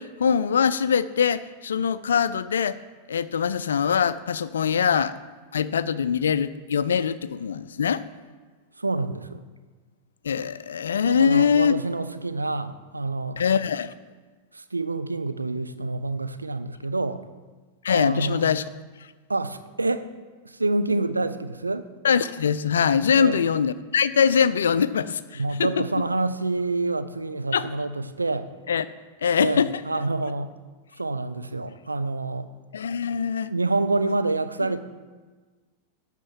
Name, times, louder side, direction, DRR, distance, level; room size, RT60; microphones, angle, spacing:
voice 1, 0.0-2.8 3.1-5.1 5.5-8.0 10.2-11.7 13.4-13.9 17.8-18.6 22.0-25.8 27.5-27.7 28.7-28.9 29.2-29.8 32.7-33.5, left 7 dB, 65° left, 15 dB, 0.4 m, -23 dB
voice 2, 8.8-9.4 11.0-13.4 14.5-17.2 17.9-18.4 19.3-20.1 20.4-21.9 23.1-23.4 25.4-28.5 29.4-30.5 31.0-32.5 33.5-34.8, right 2 dB, 80° right, 11 dB, 0.5 m, -27 dB
11.5 x 4.5 x 7.3 m, 1.3 s
figure-of-eight pair, 90°, 0 cm